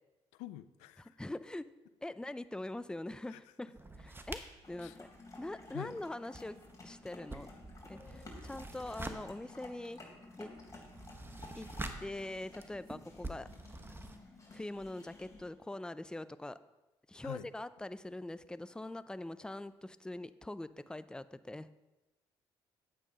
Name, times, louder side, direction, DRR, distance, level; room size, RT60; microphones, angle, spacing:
voice 1, 0.3-1.2 3.3-3.4 4.8-5.0 5.7-6.0 17.2-17.5, left 15 dB, 80° left, 14 dB, 0.5 m, -46 dB
voice 2, 1.0-1.6 2.0-4.4 4.7-5.1 5.4-6.6 6.8-7.5 7.8-10.0 10.4-10.5 11.6-11.7 12.0-13.5 14.5-16.6 17.1-21.7, left 1 dB, 5° left, 14 dB, 0.5 m, -43 dB
sound 1, 3.7-5.9 6.2-14.2, right 2 dB, 20° right, 1.3 m, -47 dB
sound 2, 4.6-15.5, left 2 dB, 30° left, 3.4 m, -54 dB
10.0 x 8.4 x 5.1 m, 1.1 s
hypercardioid pair, 55°, 12 cm